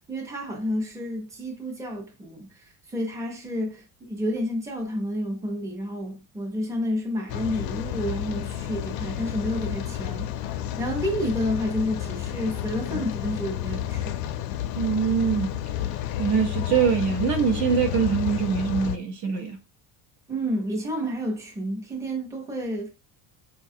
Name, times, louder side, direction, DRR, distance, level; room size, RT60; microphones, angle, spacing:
voice 1, 0.1-10.3 10.8-14.2 20.3-22.9, equal, 10° right, 0.6 m, -30 dB
Rain, 7.3-19.0, left 11 dB, 65° left, 0.5 m, -31 dB
voice 2, 14.7-15.6 16.2-19.6, right 6 dB, 50° right, 0.7 m, -23 dB
4.9 x 2.3 x 2.7 m
cardioid pair, 155°, 39 cm